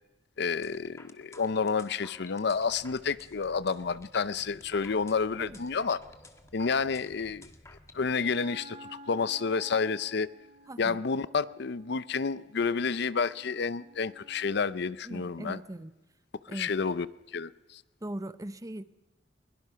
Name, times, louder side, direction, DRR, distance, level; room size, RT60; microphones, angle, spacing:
voice 1, 0.4-6.0 6.5-7.5 7.9-10.3 10.8-15.6 16.5-17.1 17.3-17.8, left 5 dB, 60° left, 0.6 m, -30 dB
sound 1, 0.6-8.0, left 3 dB, 15° left, 1.5 m, -53 dB
sound 2, 2.5-8.1, equal, 35° left, 3.7 m, -58 dB
Wind instrument woodwind instrument, 8.1-14.8, right 1 dB, 35° right, 1.9 m, -53 dB
voice 2, 10.7-11.0 15.0-15.9 16.5-16.7 18.0-18.8, right 1 dB, 20° right, 0.7 m, -39 dB
22.0 x 22.0 x 5.7 m
head